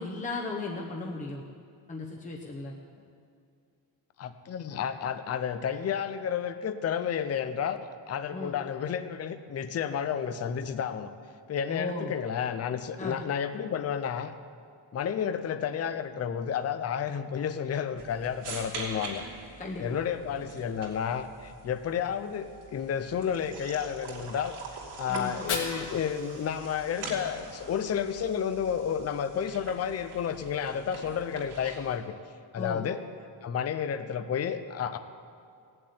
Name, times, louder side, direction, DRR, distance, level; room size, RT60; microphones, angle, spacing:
voice 1, 0.0-1.4 1.9-2.7 8.3-8.5 11.7-12.1 13.0-13.2 19.6-20.0 25.1-25.3 32.6-32.8, left 3 dB, 15° left, -2 dB, 0.9 m, -35 dB
voice 2, 4.2-7.8 8.1-11.1 11.5-14.3 14.9-19.2 19.8-24.6 25.0-32.1 32.5-33.0 33.4-35.0, left 8 dB, 30° left, 10 dB, 0.6 m, -31 dB
sound 1, 18.0-32.0, right 3 dB, 75° right, 3.6 m, -44 dB
Fire, 25.2-27.2, left 4 dB, 75° left, 2.7 m, -38 dB
17.0 x 7.7 x 9.5 m, 2.3 s
cardioid pair, 170°, 49 cm